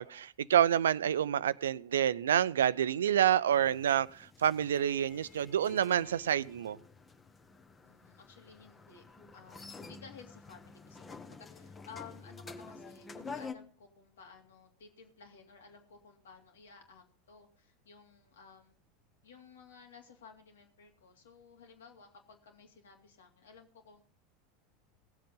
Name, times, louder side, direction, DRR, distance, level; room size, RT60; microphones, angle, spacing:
voice 1, 0.0-6.8, right 10 dB, 75° right, 0.5 m, -28 dB
sound 1, 3.5-13.5, left 4 dB, 20° left, 1.4 m, -49 dB
voice 2, 7.8-9.0 9.3-18.7 19.2-24.1, left 6 dB, 75° left, 3.1 m, -55 dB
17.5 x 7.8 x 5.5 m
figure-of-eight pair, 80°, 0 cm